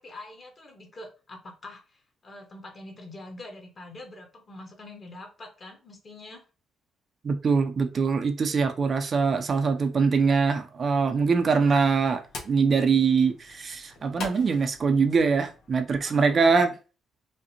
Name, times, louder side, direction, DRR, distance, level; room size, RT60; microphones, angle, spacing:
voice 1, 0.0-6.4 16.0-16.7, left 2 dB, 35° left, 1.3 m, -45 dB
voice 2, 7.2-16.7, right 5 dB, 45° right, 0.5 m, -23 dB
sound 1, 10.7-16.1, left 3 dB, 65° left, 1.2 m, -44 dB
4.9 x 2.1 x 2.8 m
cardioid pair, 90°, 0 cm